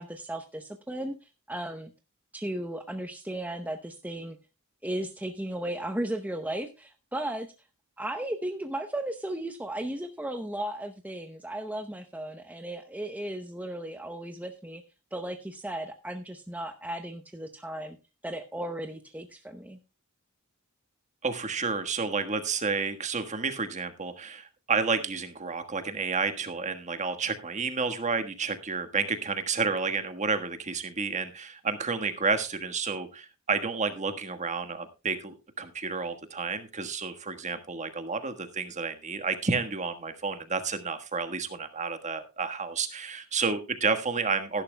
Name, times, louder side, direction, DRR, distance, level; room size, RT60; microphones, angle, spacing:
voice 1, 0.0-1.9 2.3-4.4 4.8-7.5 8.0-14.8 15.1-18.0 18.2-19.8, right 1 dB, 5° right, 6 dB, 0.7 m, -35 dB
voice 2, 21.2-44.6, right 4 dB, 35° right, 9 dB, 1.4 m, -30 dB
17.0 x 11.0 x 2.2 m, 0.28 s
head